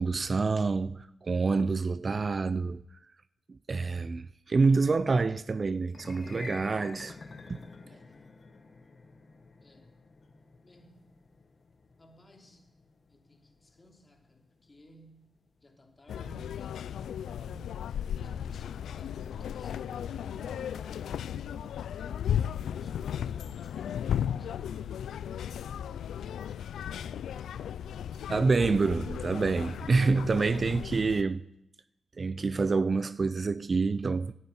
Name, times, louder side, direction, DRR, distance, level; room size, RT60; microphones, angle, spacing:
voice 1, 0.0-2.8 3.7-7.2 7.5-7.6 28.3-31.4 32.2-34.3, right 4 dB, 40° right, 0.4 m, -27 dB
sound 1, 5.8-16.2, left 3 dB, 45° left, 1.6 m, -50 dB
voice 2, 9.6-10.0 10.6-11.1 12.0-12.7 13.1-22.4 22.6-25.2, left 1 dB, 25° left, 2.9 m, -56 dB
sound 2, 16.1-31.2, left 9 dB, 80° left, 0.4 m, -35 dB
11.0 x 9.0 x 9.5 m
cardioid pair, 60°, 0 cm